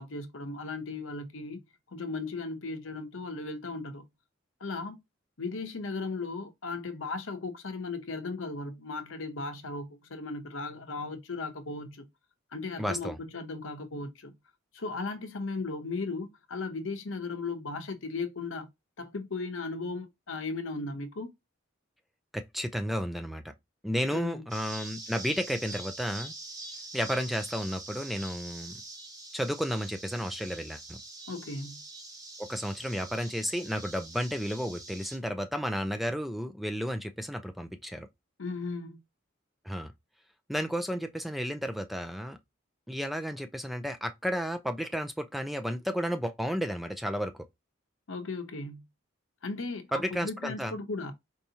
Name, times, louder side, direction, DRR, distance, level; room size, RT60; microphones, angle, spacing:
voice 1, 0.0-1.6 1.9-4.0 4.6-5.0 5.4-12.1 12.5-14.3 14.7-18.7 19.0-21.3 24.1-24.4 31.3-31.8 38.4-39.0 48.1-48.9 49.4-51.1, left 3 dB, 80° left, 0.8 m, -36 dB
voice 2, 12.8-13.2 22.3-23.5 23.8-26.3 26.9-28.8 29.3-31.0 32.4-38.1 39.6-39.9 40.5-42.4 42.9-47.5 49.9-50.7, equal, ahead, 0.4 m, -32 dB
sound 1, 24.5-35.2, right 2 dB, 20° right, 0.9 m, -44 dB
4.6 x 2.7 x 2.8 m
head